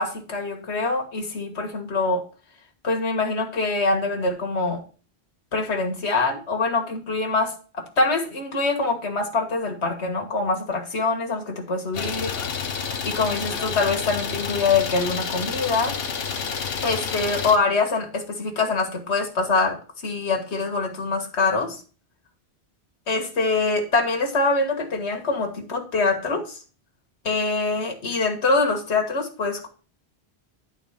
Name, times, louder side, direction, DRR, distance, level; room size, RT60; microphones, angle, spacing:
voice 1, 0.0-2.2 2.8-4.8 5.5-12.6 13.0-15.9 16.8-21.8 23.1-26.6 27.2-29.7, left 3 dB, 85° left, 3 dB, 1.8 m, -24 dB
Idling, 11.9-17.6, left 6 dB, 65° left, 1.2 m, -29 dB
10.5 x 4.1 x 5.6 m, 0.38 s
omnidirectional pair, 1.1 m